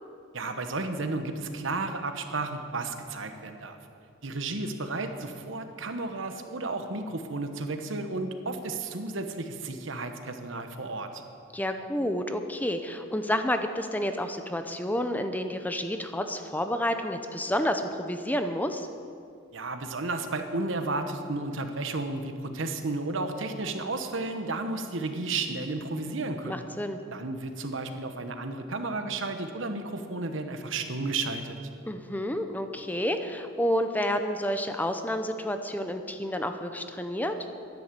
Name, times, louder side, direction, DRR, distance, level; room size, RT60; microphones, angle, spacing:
voice 1, 0.3-3.8 4.2-11.2 19.5-26.6 27.1-31.6, right 3 dB, 65° right, 7 dB, 1.2 m, -33 dB
voice 2, 11.5-18.9 26.5-27.0 31.9-37.3, left 1 dB, 10° left, 7 dB, 0.6 m, -30 dB
11.5 x 10.5 x 7.6 m, 2.4 s
head